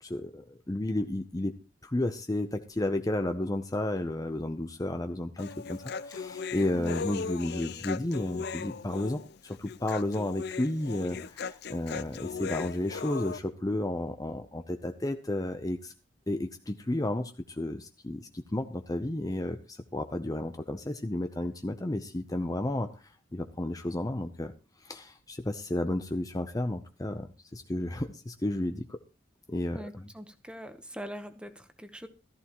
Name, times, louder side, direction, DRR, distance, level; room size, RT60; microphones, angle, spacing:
voice 1, 0.0-1.5 1.8-15.9 16.3-24.5 24.8-29.0 29.5-30.1, left 1 dB, 20° left, 8 dB, 0.6 m, -32 dB
Human voice, 5.4-13.4, left 5 dB, 60° left, 0.5 m, -38 dB
voice 2, 29.7-32.1, equal, 5° right, 9 dB, 0.9 m, -42 dB
14.5 x 14.0 x 3.0 m, 0.34 s
head